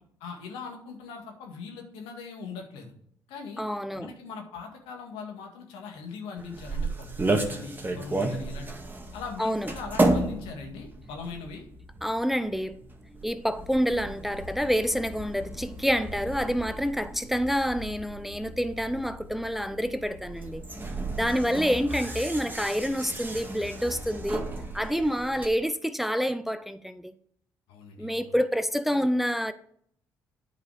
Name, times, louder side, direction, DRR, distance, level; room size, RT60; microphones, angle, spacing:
voice 1, 0.2-2.9 3.3-3.6 4.0-8.8 9.1-11.6 27.7-28.3, left 5 dB, 80° left, 1.9 m, -40 dB
voice 2, 3.6-4.1 9.4-9.7 12.0-12.8 13.2-20.6 21.1-27.1 28.0-29.5, equal, ahead, 0.6 m, -28 dB
sound 1, 6.4-25.5, right 2 dB, 20° right, 1.7 m, -33 dB
9.3 x 5.1 x 4.9 m
supercardioid pair, 60°, 9 cm